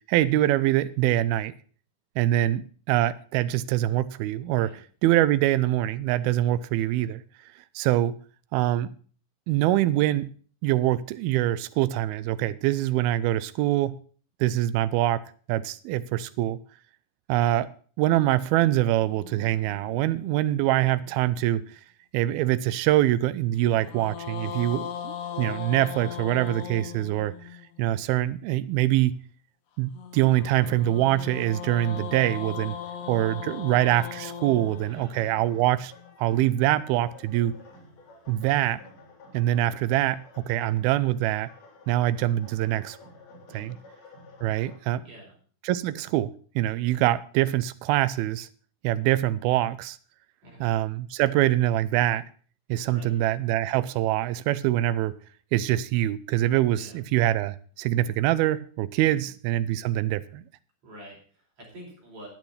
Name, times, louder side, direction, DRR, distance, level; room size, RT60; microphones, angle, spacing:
voice 1, 0.1-1.5 2.2-4.7 5.0-7.2 7.8-8.2 8.5-8.9 9.5-10.3 10.6-14.0 14.4-15.2 15.5-16.6 17.3-17.7 18.0-21.8 22.1-27.5 27.8-29.2 29.8-32.8 33.1-35.9 36.2-37.5 38.3-38.8 39.3-41.5 41.9-43.0 43.5-43.8 44.4-45.0 45.6-48.5 48.8-50.0 50.6-52.2 52.7-55.1 55.5-60.4, right 14 dB, 85° right, 2.5 m, -24 dB
sound 1, 19.0-21.4 23.6-27.8 29.9-36.1, left 9 dB, 55° left, 1.9 m, -39 dB
voice 2, 24.4-24.8 34.8-35.2 43.5-43.8 44.9-45.4 50.4-50.9 52.8-53.2 56.7-57.0 59.0-59.3 60.8-62.3, equal, 45° right, 5.6 m, -48 dB
sound 2, 31.1-44.8, left 2 dB, 80° left, 5.5 m, -51 dB
10.5 x 9.0 x 5.6 m
omnidirectional pair, 4.3 m